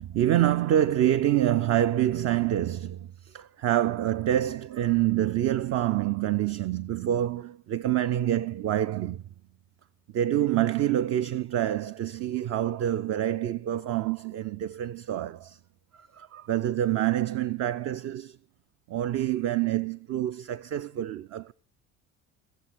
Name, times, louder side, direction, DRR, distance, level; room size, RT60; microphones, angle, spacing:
voice 1, 0.0-9.2 10.1-15.6 15.9-18.4 18.9-21.5, right 12 dB, 40° right, 0.6 m, -26 dB
17.0 x 7.3 x 8.2 m
figure-of-eight pair, 55°, 41 cm